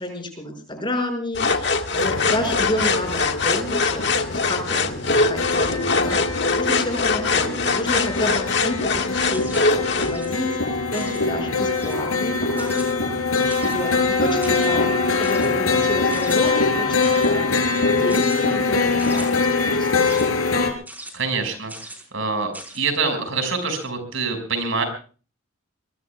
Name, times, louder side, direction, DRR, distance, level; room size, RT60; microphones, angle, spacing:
voice 1, 0.0-12.7 13.6-17.6 17.9-20.1, left 1 dB, 25° left, 4 dB, 6.1 m, -30 dB
sound 1, 1.3-10.1, left 4 dB, 55° left, 1.7 m, -22 dB
sound 2, 2.0-20.7, left 3 dB, 85° left, 4.1 m, -23 dB
sound 3, 9.3-9.7 10.0-10.3 10.9-11.3 11.7-12.1 12.6-12.9 13.5-13.9 14.4-14.7 15.2-15.5 16.1-16.4 17.0-17.3 18.1-18.4 19.0-19.3 20.0-20.3 20.9-21.1 21.7-22.0 22.5-22.8, right 1 dB, 10° right, 4.7 m, -39 dB
voice 2, 21.1-21.7 22.1-24.8, right 4 dB, 70° right, 6 dB, 5.7 m, -25 dB
24.5 x 22.5 x 2.4 m, 0.39 s
head